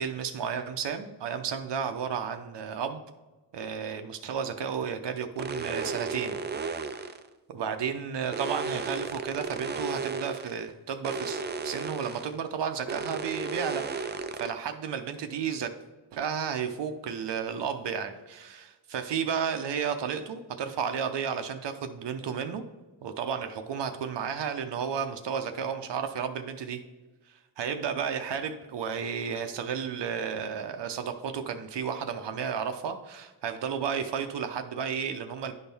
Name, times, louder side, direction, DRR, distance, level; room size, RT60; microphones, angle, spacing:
voice 1, 0.0-3.0 3.5-6.4 7.5-15.7 16.1-22.6 23.0-26.8 27.6-35.5, right 7 dB, 65° right, 7 dB, 0.7 m, -32 dB
sound 1, 5.4-7.3 8.3-10.6 11.0-12.3 12.9-14.5, right 4 dB, 25° right, 0.4 m, -34 dB
11.0 x 4.4 x 3.5 m, 1.2 s
cardioid pair, 110°, 47 cm